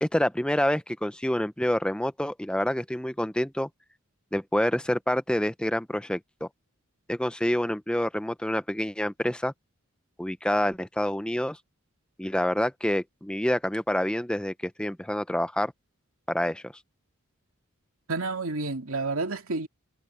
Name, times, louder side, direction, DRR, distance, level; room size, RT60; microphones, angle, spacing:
voice 1, 0.0-3.7 4.3-6.5 7.1-9.5 10.2-11.6 12.2-15.7 16.3-16.7, left 1 dB, 5° left, 0.6 m, -27 dB
voice 2, 18.1-19.7, right 3 dB, 70° right, 2.5 m, -30 dB
head